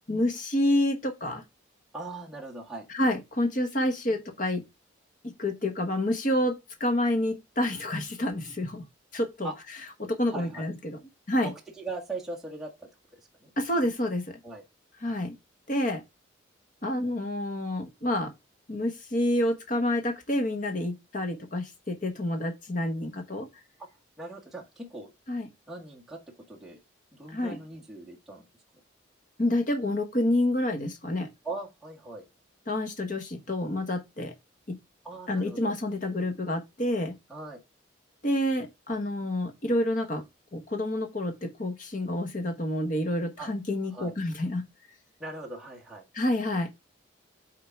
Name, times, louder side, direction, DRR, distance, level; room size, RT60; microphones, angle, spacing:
voice 1, 0.1-1.4 2.9-4.6 5.2-6.5 6.8-8.8 9.1-9.5 10.0-11.0 11.3-11.5 13.6-14.4 15.0-15.3 15.7-16.0 16.8-18.3 18.7-23.5 25.3-25.5 27.3-27.6 29.4-31.3 32.7-34.3 34.7-34.8 35.3-37.1 38.2-40.2 40.5-44.6 46.1-46.8, left 1 dB, 40° left, 1.2 m, -28 dB
voice 2, 1.9-2.9 9.4-9.5 10.3-10.6 11.4-13.5 14.4-14.6 24.2-25.1 25.7-26.2 26.5-26.8 27.1-28.4 31.4-32.2 35.0-35.7 37.3-37.6 43.4-43.5 43.9-44.1 45.2-46.0, right 2 dB, ahead, 1.6 m, -40 dB
6.5 x 3.8 x 4.7 m
head